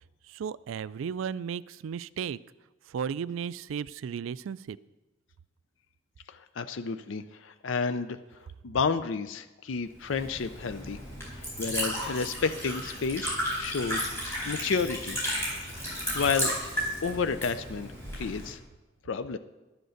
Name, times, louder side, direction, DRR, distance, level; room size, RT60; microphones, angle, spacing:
voice 1, 0.3-2.4 2.9-4.8, right 7 dB, 85° right, 18 dB, 0.3 m, -34 dB
voice 2, 6.3-8.2 8.6-11.0 11.3-14.1 14.5-15.2 15.5-16.5 17.0-18.6 19.0-19.4, left 5 dB, 75° left, 11 dB, 0.5 m, -31 dB
Liquid, 10.0-18.5, equal, 15° left, 4.4 m, -34 dB
12.0 x 7.9 x 6.5 m, 1.1 s
head